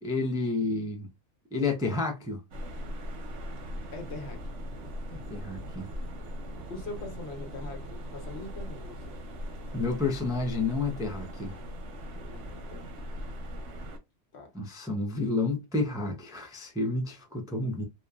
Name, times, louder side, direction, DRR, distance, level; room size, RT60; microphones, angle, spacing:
voice 1, 0.0-1.1 1.5-2.4 5.1-5.9 9.7-11.6 14.5-17.8, left 3 dB, 5° right, 0.3 m, -30 dB
sound 1, 2.5-14.0, equal, 90° right, 1.1 m, -39 dB
voice 2, 3.9-4.4 6.7-9.1 12.2-12.9 14.3-14.5, left 2 dB, 70° left, 1.2 m, -42 dB
2.9 x 2.2 x 2.3 m
omnidirectional pair, 1.2 m